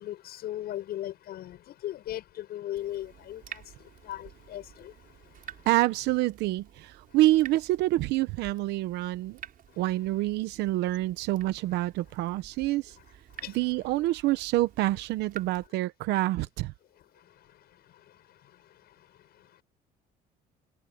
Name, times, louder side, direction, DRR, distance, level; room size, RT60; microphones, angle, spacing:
voice 1, 0.0-1.6 1.8-3.4 4.1-4.9, left 13 dB, 70° left, 7.7 m, -37 dB
Water tap faucet / Drip, 2.7-15.7, right 10 dB, 60° right, 6.0 m, -50 dB
voice 2, 5.7-9.4 9.8-13.0 13.5-16.7, right 17 dB, 85° right, 0.9 m, -27 dB
cardioid pair, 110°, 17 cm